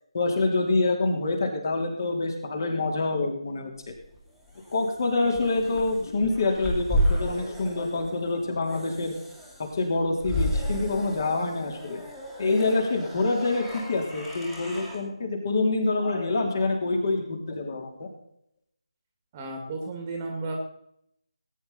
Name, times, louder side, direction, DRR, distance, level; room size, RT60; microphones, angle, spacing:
voice 1, 0.1-3.7 4.7-9.1 9.7-12.0 12.4-18.1, left 3 dB, 35° left, 2 dB, 3.5 m, -26 dB
sound 1, 3.9-15.0, equal, 5° left, 2.4 m, -33 dB
voice 2, 19.3-20.6, right 3 dB, 20° right, 2 dB, 2.2 m, -33 dB
19.5 x 9.9 x 4.2 m, 0.74 s
figure-of-eight pair, 155°, 3 cm